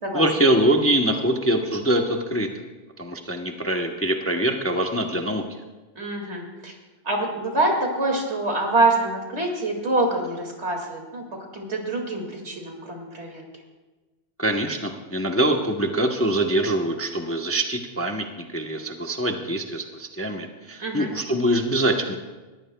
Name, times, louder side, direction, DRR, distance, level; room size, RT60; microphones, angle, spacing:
voice 1, 0.1-2.5 3.0-5.6 14.4-22.1, right 1 dB, 15° left, 3 dB, 0.8 m, -24 dB
voice 2, 6.0-6.7 7.0-11.2 11.5-13.4 20.8-21.1, right 2 dB, 60° right, 1 dB, 2.5 m, -25 dB
20.5 x 14.5 x 2.3 m, 1.2 s
omnidirectional pair, 1.3 m